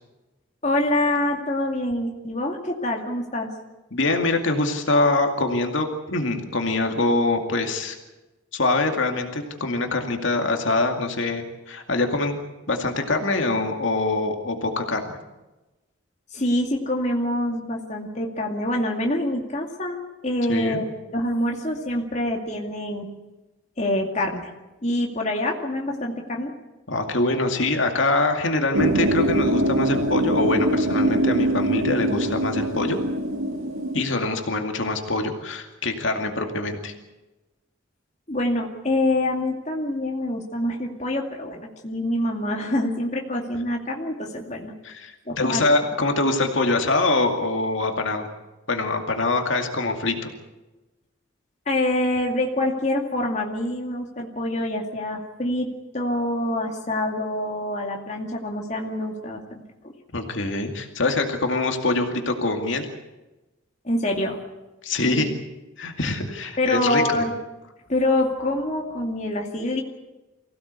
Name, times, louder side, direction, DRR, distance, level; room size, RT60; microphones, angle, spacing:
voice 1, 0.6-3.5 16.3-20.8 21.1-23.1 23.8-24.5 24.8-26.5 38.3-44.7 45.3-45.6 51.7-59.6 63.8-64.4 65.0-65.3 66.6-67.4 67.9-69.8, left 1 dB, 35° left, 1 dB, 2.4 m, -26 dB
voice 2, 3.9-8.0 8.5-12.4 12.7-15.2 20.5-20.8 26.9-33.0 33.9-36.9 44.8-48.3 48.7-50.3 60.1-62.9 64.8-65.3 65.8-67.2, left 2 dB, 70° left, 4 dB, 2.3 m, -24 dB
sound 1, 28.7-34.0, right 1 dB, 90° right, 2.7 m, -23 dB
24.0 x 16.5 x 8.2 m, 1.1 s
head